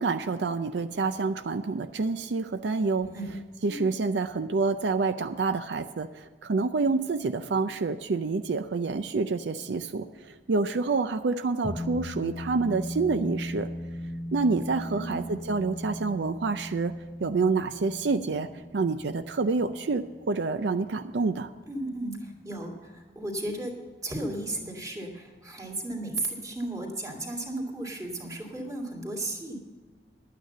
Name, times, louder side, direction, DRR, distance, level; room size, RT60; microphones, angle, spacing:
voice 1, 0.0-3.1 3.6-13.7 14.3-16.9 17.2-18.5 18.7-21.5, right 4 dB, 80° right, 10 dB, 0.5 m, -28 dB
sound 1, 11.6-22.3, left 1 dB, 5° left, 1.5 m, -39 dB
voice 2, 14.9-15.2 21.7-23.8 24.0-29.6, right 1 dB, 20° right, -1 dB, 2.2 m, -35 dB
11.0 x 9.2 x 6.7 m, 1.4 s
head